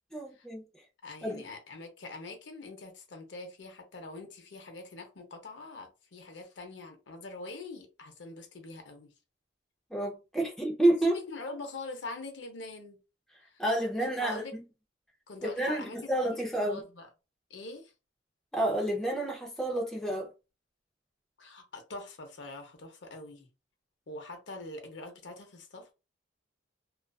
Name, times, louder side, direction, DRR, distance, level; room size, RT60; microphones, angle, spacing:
voice 1, 0.1-0.6 1.2-1.4 9.9-11.2 13.6-14.4 15.4-16.8 18.5-20.3, right 1 dB, ahead, 0.5 m, -29 dB
voice 2, 1.0-9.1 11.1-13.0 13.4-13.6 14.0-14.5 15.3-17.1 17.5-17.9 21.4-23.5 24.1-25.9, left 2 dB, 65° left, 0.6 m, -44 dB
2.4 x 2.3 x 2.3 m
head